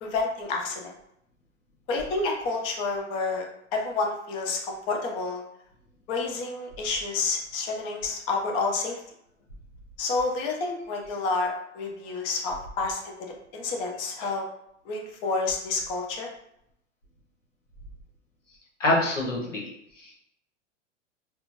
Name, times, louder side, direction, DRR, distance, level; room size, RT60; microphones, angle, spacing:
voice 1, 0.0-0.9 1.9-3.4 3.7-5.4 6.1-9.0 10.0-13.1 13.5-14.4 14.9-16.3, left 3 dB, 15° left, 1 dB, 0.3 m, -29 dB
voice 2, 18.8-20.2, left 1 dB, 80° left, -1 dB, 1.1 m, -27 dB
5.5 x 2.3 x 2.6 m, 0.77 s
figure-of-eight pair, 90°, 37 cm